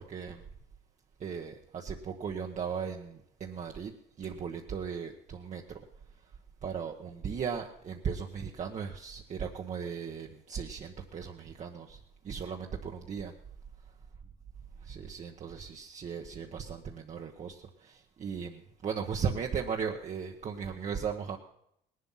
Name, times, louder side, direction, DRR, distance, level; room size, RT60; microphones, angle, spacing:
voice 1, 0.1-0.4 1.2-3.9 4.2-5.6 6.6-12.0 12.2-13.3 14.8-21.4, right 6 dB, 45° right, 1 dB, 1.3 m, -37 dB
18.5 x 11.5 x 5.7 m, 0.75 s
cardioid pair, 110°, 17 cm